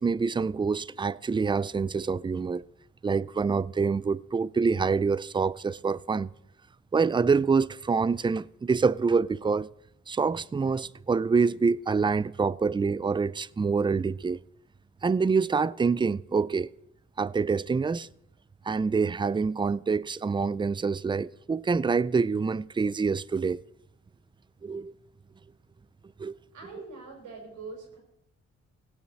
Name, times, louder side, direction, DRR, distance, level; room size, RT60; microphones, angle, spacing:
voice 1, 0.0-2.6 3.0-6.3 6.9-9.7 10.1-14.4 15.0-16.7 17.2-18.1 18.6-23.6 24.6-24.9 26.2-26.4, right 5 dB, 15° right, 0.4 m, -26 dB
voice 2, 26.5-28.0, right 4 dB, 85° right, 4.6 m, -43 dB
16.5 x 6.5 x 7.6 m
supercardioid pair, 60°, 30 cm